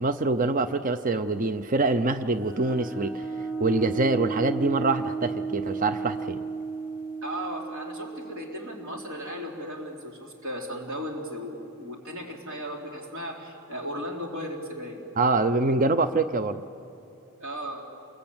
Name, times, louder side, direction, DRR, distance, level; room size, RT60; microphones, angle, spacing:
voice 1, 0.0-3.2 3.6-6.4 15.2-16.6, right 3 dB, 35° right, 11 dB, 0.6 m, -25 dB
sound 1, 2.4-9.8, right 4 dB, 10° right, 1.3 m, -34 dB
voice 2, 7.2-15.1 17.4-17.8, equal, 60° right, 0 dB, 3.8 m, -36 dB
28.0 x 22.5 x 8.8 m, 2.9 s
head